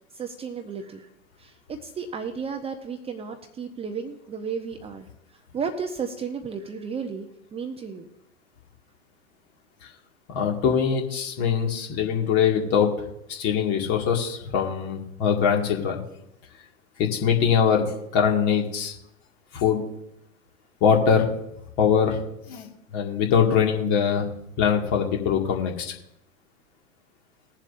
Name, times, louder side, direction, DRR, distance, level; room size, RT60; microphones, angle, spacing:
voice 1, 0.1-1.1 1.4-5.1 5.5-7.3 7.5-8.1, right 6 dB, 15° right, 5 dB, 0.8 m, -33 dB
voice 2, 10.3-12.9 13.3-16.0 17.0-17.8 18.1-18.9 19.5-19.8 20.8-21.3 21.8-22.2 22.5-22.7 22.9-24.3 24.6-25.9, left 7 dB, 40° left, 1 dB, 2.2 m, -22 dB
21.0 x 7.3 x 2.6 m, 0.81 s
figure-of-eight pair, 95°, 38 cm